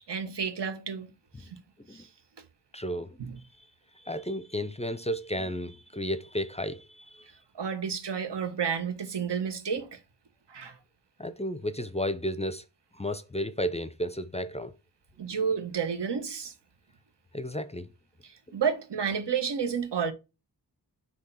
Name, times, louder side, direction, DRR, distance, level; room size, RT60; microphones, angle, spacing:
voice 1, 0.1-1.1 1.4-1.6 1.9-2.1 3.2-3.3 7.6-10.0 10.5-10.8 15.2-16.5 18.2-20.1, right 6 dB, 85° right, 1.1 m, -31 dB
voice 2, 2.7-3.2 4.1-7.3 11.2-12.6 13.0-14.7 17.3-17.9, equal, 15° left, 0.4 m, -33 dB
6.4 x 2.8 x 5.4 m
wide cardioid pair, 95°, 41 cm